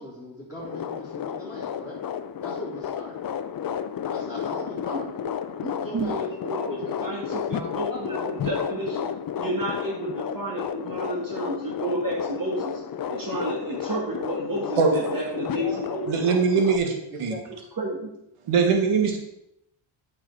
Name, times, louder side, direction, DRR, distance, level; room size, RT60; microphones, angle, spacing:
voice 1, 0.0-2.0 2.4-3.2 4.1-5.1 5.6-6.9 7.5-8.5 15.4-15.8 17.1-17.4, left 1 dB, 5° right, -11 dB, 3.5 m, -38 dB
sound 1, 0.6-16.8, left 8 dB, 45° left, 0.6 m, -32 dB
voice 2, 5.9-9.1 9.3-12.8 13.1-16.1 17.8-18.1, right 1 dB, 40° right, -3 dB, 1.8 m, -31 dB
voice 3, 16.1-16.9 17.2-17.3 18.5-19.2, right 5 dB, 90° right, 3 dB, 1.7 m, -21 dB
8.9 x 5.4 x 4.7 m, 0.82 s
cardioid pair, 105°, 50 cm